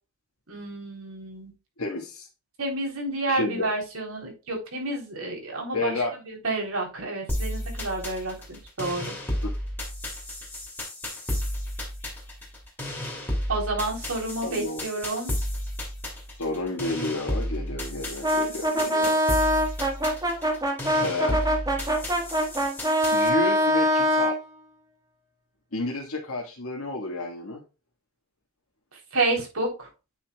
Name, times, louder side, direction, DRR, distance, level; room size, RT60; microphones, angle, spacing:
voice 1, 0.5-1.5 2.6-6.0 6.2-9.2 13.5-15.3 29.1-29.9, right 2 dB, 75° right, 1 dB, 3.6 m, -30 dB
voice 2, 1.8-2.3 3.3-3.7 5.7-6.1 9.4-9.5 14.4-14.8 16.4-19.2 21.0-21.4 23.1-24.4 25.7-27.6, left 2 dB, 75° left, -3 dB, 1.8 m, -30 dB
sound 1, 7.3-23.3, left 1 dB, 10° left, 2.8 m, -33 dB
Brass instrument, 18.2-24.4, equal, 15° right, 1.6 m, -23 dB
9.4 x 6.2 x 2.4 m, 0.30 s
head